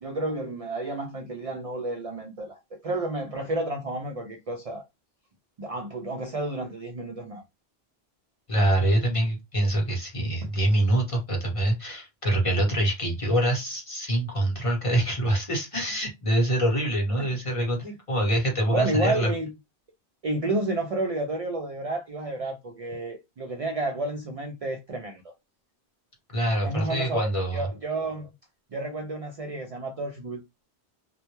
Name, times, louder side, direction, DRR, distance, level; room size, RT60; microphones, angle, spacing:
voice 1, 0.0-4.8 5.6-7.4 10.4-10.5 17.2-17.3 18.7-19.5 20.2-25.2 26.6-28.3 28.7-30.4, right 2 dB, 60° right, 0.4 m, -31 dB
voice 2, 8.5-19.3 26.3-27.7, right 1 dB, 35° left, 0.8 m, -25 dB
2.1 x 2.1 x 2.9 m
omnidirectional pair, 1.1 m